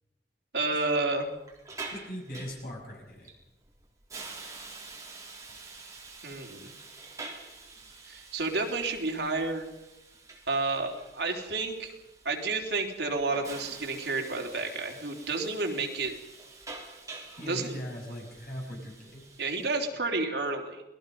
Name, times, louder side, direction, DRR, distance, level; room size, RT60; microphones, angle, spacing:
voice 1, 0.5-1.3 6.2-6.7 8.1-9.7 10.5-11.9 12.2-16.1 17.5-17.8 19.4-20.8, right 3 dB, 70° right, 1 dB, 3.3 m, -30 dB
Hiss, 1.2-19.8, right 3 dB, 20° right, 3.8 m, -47 dB
voice 2, 1.9-3.3 17.4-19.2, equal, 55° left, 0 dB, 6.8 m, -40 dB
28.0 x 19.5 x 5.4 m, 0.97 s
head